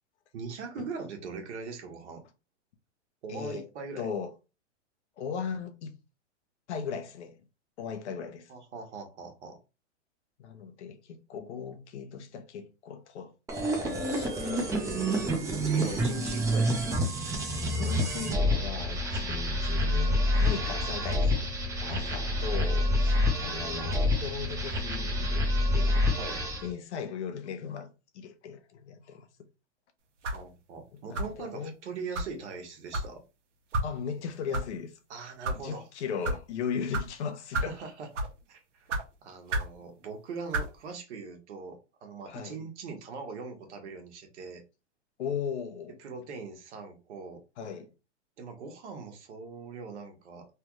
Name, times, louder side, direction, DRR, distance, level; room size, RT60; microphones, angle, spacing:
voice 1, 0.3-2.2 3.2-4.1 8.5-9.6 15.4-17.0 21.8-23.2 26.2-26.4 30.3-33.2 35.1-35.9 37.5-44.6 46.0-47.4 48.4-50.5, right 4 dB, 70° right, 1.3 m, -41 dB
voice 2, 3.3-3.7 4.0-4.3 5.2-5.9 6.7-7.4 7.8-8.5 10.4-13.3 13.8-15.4 17.8-21.5 21.9-22.9 23.3-25.5 25.7-26.1 26.6-29.3 30.9-31.7 33.8-35.0 35.5-37.8 42.3-42.6 45.2-46.0 47.6-47.9, left 6 dB, 70° left, 0.8 m, -37 dB
sound 1, 13.5-26.7, left 1 dB, 10° right, 0.5 m, -28 dB
sound 2, 30.2-30.5 31.1-31.4 32.1-32.3 32.9-33.1 33.7-33.9 34.5-34.7 35.3-35.6 36.2-36.4 36.9-37.1 37.5-37.8 38.1-38.4 38.9-39.0 39.5-39.7 40.5-40.7, right 1 dB, 90° right, 1.0 m, -30 dB
3.3 x 2.3 x 3.1 m
hypercardioid pair, 135°, 35 cm